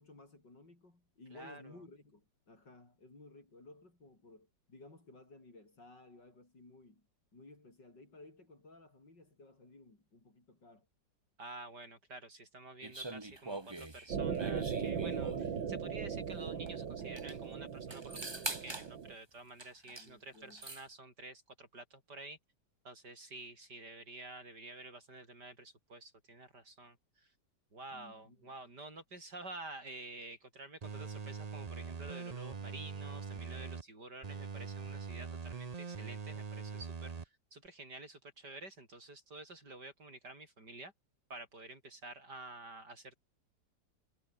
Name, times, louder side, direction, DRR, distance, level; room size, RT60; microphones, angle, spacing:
voice 1, 0.0-7.1 7.3-10.9 19.9-20.7 27.9-28.6, left 2 dB, 70° left, 7.1 m, -57 dB
voice 2, 1.3-1.8 11.4-22.4 22.8-27.3 27.7-40.9 41.3-43.2, right 2 dB, 60° right, 7.3 m, -50 dB
sound 1, 12.8-15.6 16.7-16.8 17.0-17.4 17.9-18.9 19.6-20.1 20.3-20.9, right 2 dB, 15° right, 1.6 m, -43 dB
sound 2, 14.1-19.1, right 7 dB, 85° right, 2.6 m, -38 dB
sound 3, 30.8-33.8 34.2-37.2 37.6-37.7, right 5 dB, 30° right, 0.7 m, -43 dB
omnidirectional pair, 2.0 m